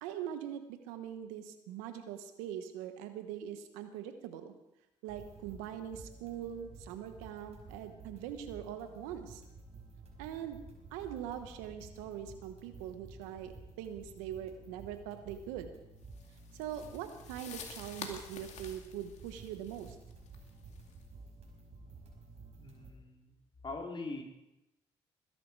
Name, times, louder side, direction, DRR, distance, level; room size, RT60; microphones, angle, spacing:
voice 1, 0.0-4.5 5.0-9.4 10.2-10.6 10.9-15.7 16.6-20.0, right 10 dB, 90° right, 9 dB, 1.2 m, -42 dB
sound 1, 5.1-22.9, right 3 dB, 55° right, 4.8 m, -53 dB
sound 2, 16.1-21.0, left 6 dB, 65° left, 2.3 m, -49 dB
voice 2, 22.6-23.4 23.6-24.2, left 3 dB, 40° left, 0 dB, 4.3 m, -42 dB
21.0 x 11.0 x 4.8 m, 0.90 s
hypercardioid pair, 50°, 13 cm